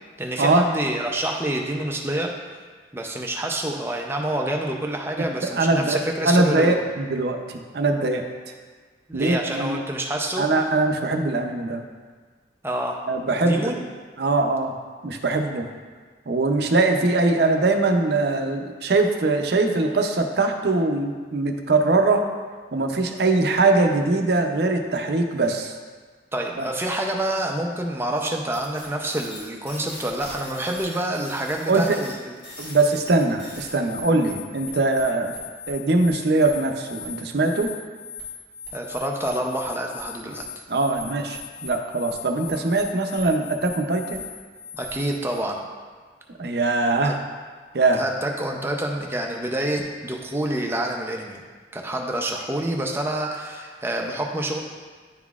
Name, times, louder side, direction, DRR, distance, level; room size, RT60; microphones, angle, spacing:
voice 1, 0.2-2.3 2.9-6.8 9.1-10.5 12.6-13.0 13.4-13.8 26.3-32.4 38.7-40.5 44.7-45.6 47.0-47.1 48.0-51.4 51.7-54.6, right 1 dB, 15° right, 1 dB, 0.5 m, -27 dB
voice 2, 5.2-8.3 9.1-9.8 10.4-11.8 13.1-13.8 14.2-14.7 15.0-15.7 16.3-22.2 22.7-25.7 26.6-26.7 31.7-32.0 32.6-35.3 35.7-37.7 40.7-44.2 46.4-47.2 47.7-48.0, right 2 dB, 65° right, 4 dB, 0.6 m, -22 dB
sound 1, 28.5-45.4, left 4 dB, 55° left, 1.8 m, -39 dB
10.5 x 3.9 x 2.4 m, 1.5 s
head